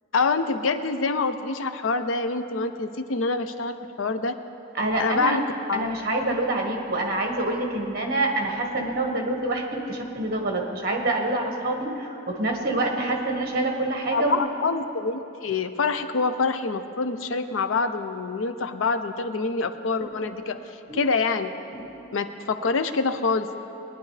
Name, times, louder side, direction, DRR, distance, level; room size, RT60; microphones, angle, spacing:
voice 1, 0.1-4.3 5.0-6.1 14.1-20.6 20.9-21.5 22.1-23.6, left 4 dB, 80° left, 10 dB, 0.6 m, -26 dB
voice 2, 4.7-5.4 5.7-14.4 20.2-20.3 20.9-21.0, right 2 dB, 50° right, 1 dB, 1.6 m, -26 dB
20.5 x 10.0 x 3.3 m, 2.9 s
head